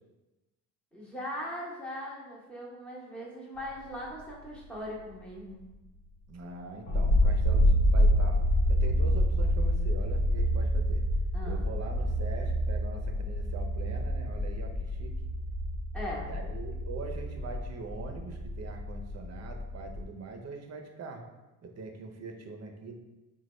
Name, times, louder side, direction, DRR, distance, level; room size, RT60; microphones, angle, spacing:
voice 1, 0.9-5.6 11.3-11.6 15.9-16.3, equal, 5° left, -5 dB, 0.9 m, -40 dB
voice 2, 6.3-8.4 8.7-11.0 11.4-15.2 16.3-21.2 21.6-23.0, right 4 dB, 45° right, 3 dB, 0.6 m, -42 dB
sound 1, 6.9-20.0, equal, 80° left, 1.1 m, -27 dB
4.0 x 2.3 x 3.1 m, 1.1 s
supercardioid pair, 80°, 38 cm